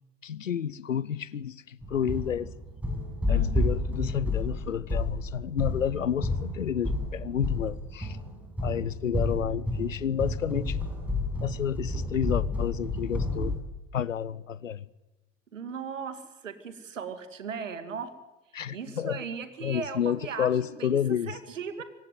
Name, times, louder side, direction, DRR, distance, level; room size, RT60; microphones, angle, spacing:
voice 1, 0.2-2.5 3.3-8.2 8.6-10.8 11.4-13.6 13.9-14.8 18.5-19.2 19.6-21.4, left 8 dB, 85° left, 0.8 m, -30 dB
sound 1, 1.8-13.6, left 2 dB, 5° right, 6.3 m, -30 dB
voice 2, 15.5-18.1 18.7-20.5 20.8-21.0 21.3-21.8, right 6 dB, 75° right, 2.2 m, -37 dB
25.0 x 15.5 x 9.4 m
figure-of-eight pair, 70°, 38 cm